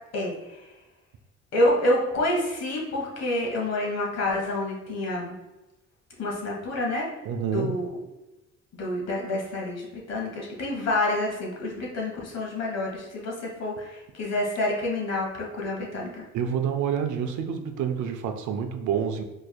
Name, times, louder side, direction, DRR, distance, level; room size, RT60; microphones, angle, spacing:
voice 1, 0.1-0.6 1.5-5.3 6.2-7.1 7.5-8.0 8.8-16.2, left 1 dB, 60° left, -2 dB, 1.3 m, -28 dB
voice 2, 7.3-7.8 16.3-19.2, right 7 dB, 75° right, 6 dB, 0.5 m, -28 dB
4.5 x 3.3 x 2.3 m, 1.0 s
cardioid pair, 90°, 30 cm